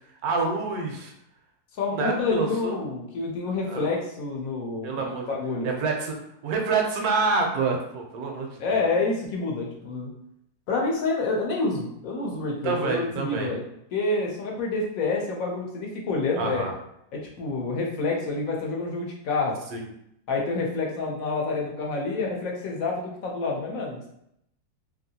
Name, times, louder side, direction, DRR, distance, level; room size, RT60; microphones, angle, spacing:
voice 1, 0.2-1.1 1.9-2.8 3.7-3.9 4.8-5.3 5.6-6.2 6.4-8.8 12.6-13.5 16.4-16.7 19.7-19.9, right 4 dB, 70° right, 1 dB, 1.1 m, -27 dB
voice 2, 1.8-4.9 5.3-5.7 8.6-10.1 10.7-13.6 13.9-16.6 17.1-19.6 20.3-24.1, left 3 dB, 65° left, -1 dB, 1.0 m, -28 dB
2.9 x 2.6 x 2.7 m, 0.77 s
omnidirectional pair, 1.7 m